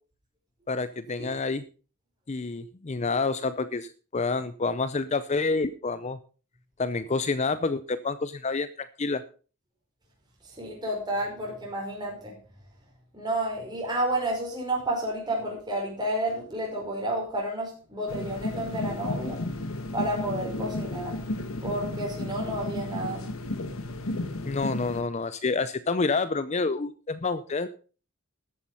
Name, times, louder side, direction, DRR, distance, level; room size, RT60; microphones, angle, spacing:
voice 1, 0.7-1.6 2.3-6.2 6.8-9.2 24.4-27.7, left 3 dB, 30° left, 13 dB, 0.5 m, -28 dB
voice 2, 10.4-12.3 13.1-19.4 19.9-21.2 21.6-23.3, right 1 dB, 20° right, -1 dB, 5.1 m, -31 dB
sound 1, 18.1-25.0, left 2 dB, 75° left, 1.5 m, -33 dB
13.5 x 8.5 x 5.5 m, 0.38 s
head